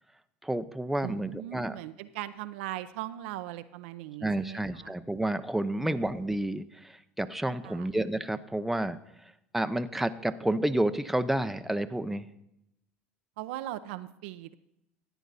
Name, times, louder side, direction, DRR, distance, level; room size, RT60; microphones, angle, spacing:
voice 1, 0.4-1.8 4.2-9.0 9.5-12.3, right 1 dB, 5° right, 10 dB, 0.7 m, -30 dB
voice 2, 1.0-4.9 5.8-6.0 7.6-7.9 13.4-14.6, right 15 dB, 75° right, 11 dB, 0.6 m, -39 dB
14.5 x 9.0 x 4.1 m, 0.84 s
hypercardioid pair, 80°, 6 cm